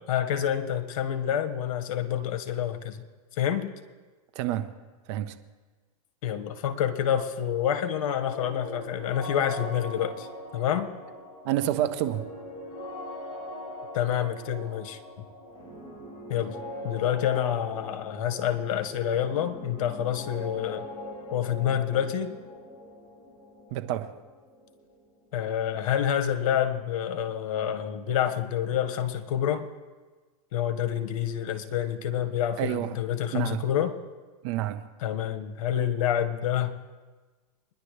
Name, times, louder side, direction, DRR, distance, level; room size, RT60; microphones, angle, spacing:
voice 1, 0.0-3.0 3.4-3.7 6.2-10.3 10.5-10.9 13.9-15.0 16.3-20.9 21.3-22.3 25.3-29.7 30.5-34.0 35.0-36.7, left 10 dB, 60° left, 1.6 m, -28 dB
voice 2, 4.3-4.7 5.1-5.4 11.4-12.2 23.7-24.1 32.6-32.9 33.3-33.6 34.4-34.8, right 13 dB, 50° right, 1.0 m, -28 dB
sound 1, 8.1-25.7, left 1 dB, 25° left, 5.3 m, -41 dB
24.0 x 11.0 x 3.3 m
hypercardioid pair, 125°, 19 cm